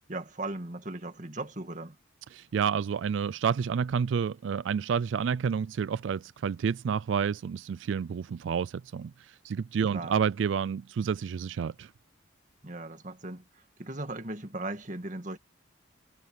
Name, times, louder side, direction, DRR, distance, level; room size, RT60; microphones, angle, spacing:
voice 1, 0.1-2.0 9.9-10.2 12.6-15.4, right 2 dB, 40° right, 2.0 m, -38 dB
voice 2, 2.3-9.1 9.4-11.9, right 7 dB, 75° right, 0.3 m, -29 dB
head